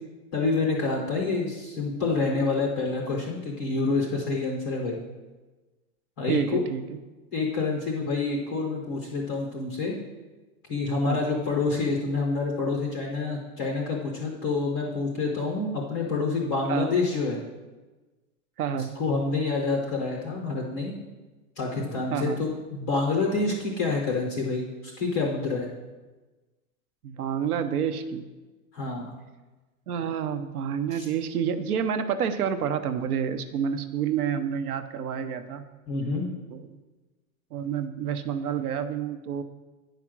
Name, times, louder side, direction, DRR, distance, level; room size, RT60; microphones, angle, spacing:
voice 1, 0.3-5.0 6.2-6.6 7.3-9.9 10.7-17.4 18.7-20.9 21.6-25.7 28.7-29.1 30.9-31.0 35.9-36.3, left 3 dB, 15° left, 0 dB, 0.3 m, -27 dB
voice 2, 6.3-7.0 11.1-11.2 16.7-16.9 18.6-18.9 22.1-22.4 27.0-28.3 29.9-35.6 36.5-36.7 37.5-39.4, right 8 dB, 90° right, 11 dB, 0.9 m, -29 dB
9.4 x 5.0 x 6.0 m, 1.2 s
supercardioid pair, 170°, 43 cm